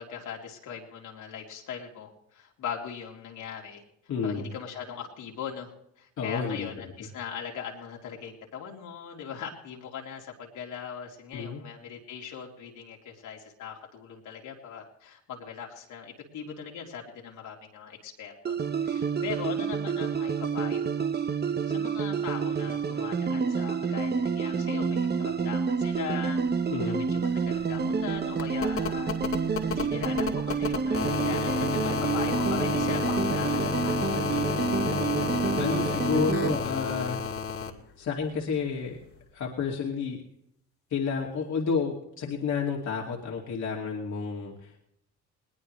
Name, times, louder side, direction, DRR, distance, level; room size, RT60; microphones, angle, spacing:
voice 1, 0.0-3.8 4.2-5.7 6.0-21.1 21.7-26.4 26.9-29.1 29.7-34.1, left 7 dB, 85° left, -1 dB, 3.4 m, -40 dB
voice 2, 4.1-4.5 6.2-6.7 11.3-11.6 26.7-27.0 34.3-37.2 38.0-39.0 39.3-40.2 40.9-44.8, left 5 dB, 65° left, -2 dB, 2.4 m, -31 dB
sound 1, 18.4-36.6, right 5 dB, 35° right, 1.0 m, -28 dB
sound 2, 26.5-26.6 26.8-37.7 39.1-39.2, left 6 dB, 50° left, 2.1 m, -31 dB
20.5 x 19.5 x 3.2 m, 0.78 s
cardioid pair, 90°, 30 cm